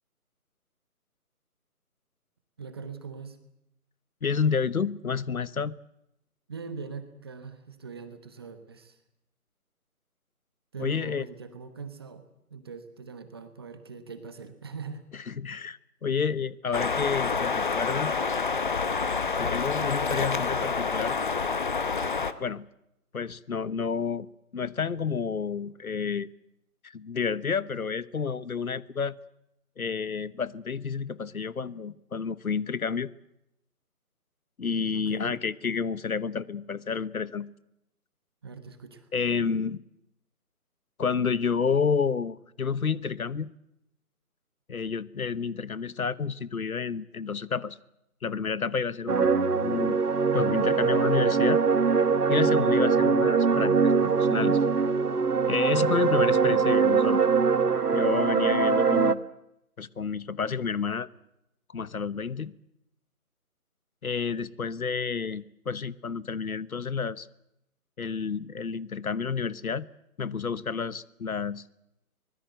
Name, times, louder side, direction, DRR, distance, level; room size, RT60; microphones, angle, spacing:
voice 1, 2.6-3.4 6.5-9.0 10.7-12.2 12.5-15.0 34.9-35.4 38.4-39.1, right 5 dB, 15° right, 9 dB, 1.2 m, -42 dB
voice 2, 4.2-5.8 10.8-11.2 15.3-18.1 19.4-21.2 22.4-22.6 23.1-24.3 24.5-26.3 26.9-29.2 29.8-33.1 34.6-37.5 39.1-39.8 41.0-43.5 44.7-47.8 48.2-50.0 50.3-51.6 52.3-54.6 55.5-57.2 57.9-59.2 59.8-61.1 61.7-62.5 64.0-67.3 68.0-69.9 70.2-71.6, left 6 dB, 70° left, 18 dB, 1.2 m, -30 dB
sound 1, 16.7-22.3, left 4 dB, 35° left, 1.0 m, -28 dB
sound 2, 49.1-59.1, right 5 dB, 85° right, 1.4 m, -23 dB
24.5 x 21.0 x 8.0 m, 0.82 s
figure-of-eight pair, 160°, 45 cm